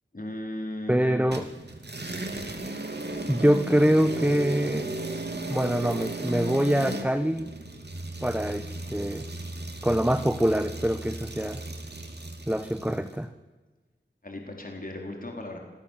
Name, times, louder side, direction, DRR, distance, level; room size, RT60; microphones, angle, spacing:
voice 1, 0.1-1.0 14.2-15.6, left 1 dB, 45° left, 1 dB, 4.2 m, -36 dB
voice 2, 0.9-1.5 3.3-4.9 5.5-7.5 8.2-9.3 9.8-11.6 12.5-13.3, equal, 5° right, 10 dB, 1.0 m, -24 dB
sound 1, 1.3-13.1, right 2 dB, 60° right, 2.6 m, -35 dB
26.5 x 17.5 x 7.5 m, 1.3 s
wide cardioid pair, 45°, 20 cm